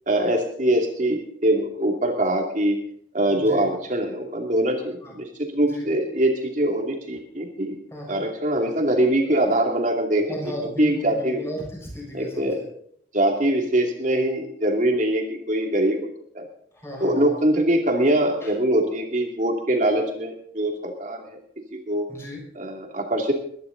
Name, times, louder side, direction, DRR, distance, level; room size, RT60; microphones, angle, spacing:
voice 1, 0.1-2.8 3.1-7.8 8.1-11.5 12.1-12.6 13.1-16.1 16.3-16.5 17.0-21.4 21.7-22.1 22.6-23.3, right 1 dB, 45° right, 2 dB, 2.6 m, -23 dB
voice 2, 3.3-3.6 5.0-5.1 5.6-5.8 7.9-8.2 10.3-12.5 16.8-17.3 18.4-18.5 22.1-22.4, equal, 15° left, -2 dB, 6.2 m, -35 dB
22.0 x 11.0 x 3.9 m, 0.65 s
head